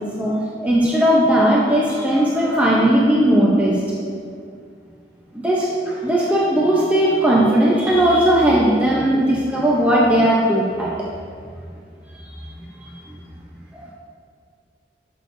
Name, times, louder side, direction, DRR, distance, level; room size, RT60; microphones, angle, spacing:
voice 1, 0.6-3.8 5.3-10.9 12.4-12.5 12.8-13.2, right 1 dB, 10° right, -5 dB, 0.8 m, -17 dB
11.0 x 6.6 x 2.7 m, 2.2 s
head